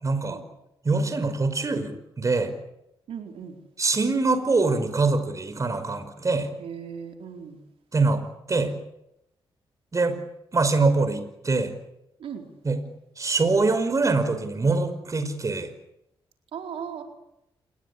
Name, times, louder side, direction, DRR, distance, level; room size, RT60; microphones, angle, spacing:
voice 1, 0.0-0.4 0.8-2.5 3.8-6.5 7.9-8.2 8.5-8.7 9.9-10.2 10.5-11.7 12.6-12.8 13.2-15.7, right 3 dB, 35° right, 10 dB, 5.3 m, -24 dB
voice 2, 3.1-3.6 6.6-7.6 12.2-12.4 16.5-17.0, right 7 dB, 80° right, 4 dB, 4.4 m, -37 dB
28.0 x 21.5 x 8.6 m, 0.83 s
cardioid pair, 85°, 9 cm